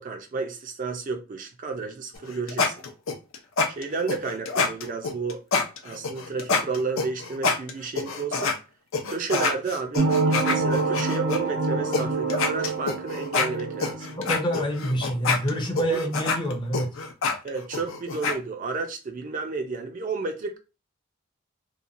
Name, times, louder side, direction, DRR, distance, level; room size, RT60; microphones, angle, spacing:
voice 1, 0.0-2.8 3.7-5.4 5.8-8.6 9.1-10.1 10.4-14.1 14.5-14.6 15.9-16.0 17.4-20.6, right 4 dB, 40° right, 0.3 m, -31 dB
sound 1, 2.1-8.6 8.9-11.4 11.9-12.0 12.3-18.4, left 4 dB, 75° left, 0.5 m, -26 dB
sound 2, 9.9-14.9, right 3 dB, 90° right, 0.5 m, -27 dB
voice 2, 14.2-17.0, right 1 dB, 20° left, 0.5 m, -27 dB
2.9 x 2.2 x 2.4 m
head